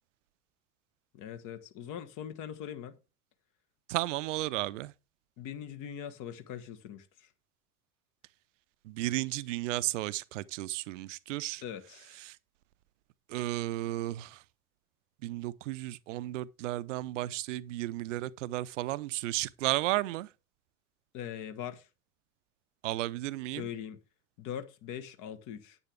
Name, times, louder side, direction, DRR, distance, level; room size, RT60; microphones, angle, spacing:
voice 1, 1.1-3.0 5.4-7.3 11.6-12.2 21.1-21.9 23.5-24.0 24.4-25.8, left 9 dB, 45° left, 1.5 m, -41 dB
voice 2, 3.9-4.9 8.9-11.6 12.3-12.4 13.3-14.4 15.2-20.3 22.8-23.7, right 16 dB, 60° right, 0.6 m, -33 dB
9.6 x 8.8 x 3.4 m
figure-of-eight pair, 75°, 44 cm